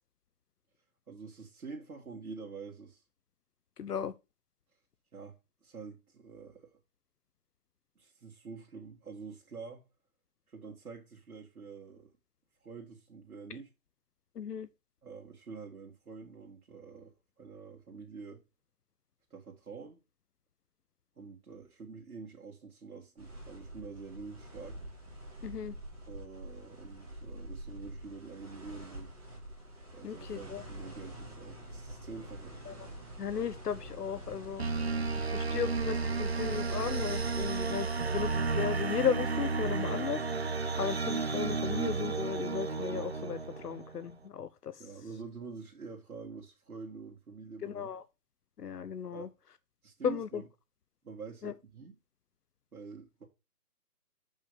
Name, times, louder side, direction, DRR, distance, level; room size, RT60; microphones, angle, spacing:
voice 1, 1.1-3.0 5.1-6.8 8.0-9.8 10.5-12.1 12.6-13.7 15.0-18.4 19.3-20.0 21.2-24.8 26.1-29.1 29.9-32.5 44.8-47.9 49.1-49.3 49.8-50.5 51.0-51.9 52.7-53.2, right 4 dB, 70° right, 2.2 m, -47 dB
voice 2, 3.8-4.1 14.4-14.7 25.4-25.7 30.0-30.6 32.7-32.8 33.2-34.7 35.1-44.8 47.6-48.0 48.6-49.3 50.0-50.4 51.4-51.5, left 8 dB, 90° left, 0.8 m, -36 dB
sound 1, 23.2-38.5, right 1 dB, 5° right, 1.8 m, -46 dB
sound 2, 34.6-44.0, right 4 dB, 45° right, 0.6 m, -32 dB
6.9 x 5.5 x 4.9 m
hypercardioid pair, 175°, 45 cm